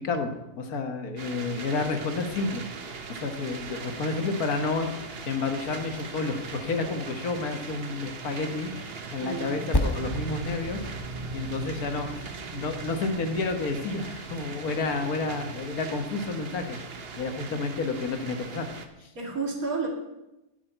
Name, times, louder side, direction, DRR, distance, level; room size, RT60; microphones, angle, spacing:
voice 1, 0.0-2.6 3.1-4.9 5.2-10.8 11.3-16.8 17.2-18.7 19.0-19.1, left 3 dB, 70° left, 6 dB, 1.7 m, -30 dB
sound 1, 1.2-18.9, right 4 dB, 45° right, 1.1 m, -39 dB
voice 2, 9.2-9.7 19.1-19.9, right 4 dB, 60° right, 0 dB, 2.7 m, -31 dB
Percussion, 9.7-14.6, left 1 dB, 30° left, 0.4 m, -34 dB
9.4 x 7.2 x 8.9 m, 0.96 s
omnidirectional pair, 1.7 m